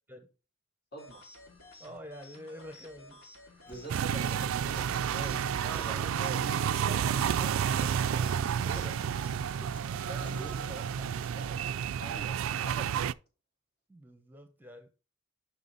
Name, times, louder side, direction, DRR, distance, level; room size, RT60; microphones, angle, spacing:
voice 1, 0.9-1.2 3.6-6.4 10.1-13.1, right 2 dB, 55° left, 3.2 m, -46 dB
sound 1, 1.0-9.3, left 2 dB, 85° left, 2.6 m, -53 dB
voice 2, 1.8-3.7 5.2-6.2 6.9-8.3 8.6-9.0 9.6-9.9 13.9-14.9, equal, 10° right, 0.8 m, -48 dB
Human voice, 3.7-11.7, right 1 dB, 10° left, 1.3 m, -52 dB
sound 2, 3.9-13.1, right 8 dB, 85° right, 0.3 m, -31 dB
7.0 x 5.9 x 3.9 m
head